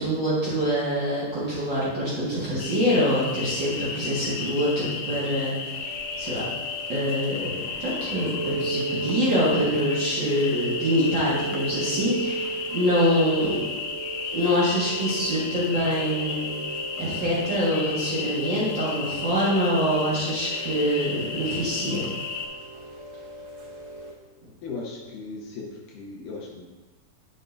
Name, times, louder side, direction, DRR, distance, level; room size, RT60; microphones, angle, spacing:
voice 1, 0.0-5.7 6.2-6.4 6.9-7.5 7.8-13.6 14.3-16.5 17.0-22.0, equal, 90° right, -9 dB, 1.0 m, -25 dB
sound 1, 2.6-22.5, left 5 dB, 75° left, 2.2 m, -33 dB
Chime / Rain, 5.7-24.1, right 3 dB, 65° right, 1.7 m, -35 dB
voice 2, 24.6-26.7, left 3 dB, 90° left, -2 dB, 1.8 m, -37 dB
11.0 x 6.6 x 2.6 m, 1.2 s
omnidirectional pair, 4.8 m